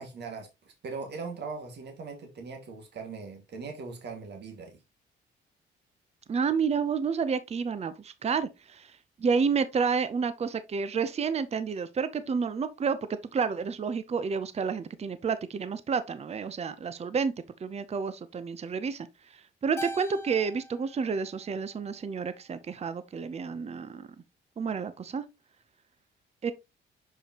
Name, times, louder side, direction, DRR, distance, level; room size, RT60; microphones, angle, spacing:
voice 1, 0.0-4.8, right 4 dB, 60° right, 2.0 m, -40 dB
voice 2, 6.3-8.9 9.2-13.0 13.3-17.3 17.6-19.1 19.6-24.1 24.6-25.2 26.4-26.5, right 5 dB, 30° right, 0.6 m, -30 dB
Keyboard (musical), 19.8-22.3, equal, 15° left, 0.7 m, -43 dB
6.7 x 4.9 x 2.9 m
cardioid pair, 90°, 20 cm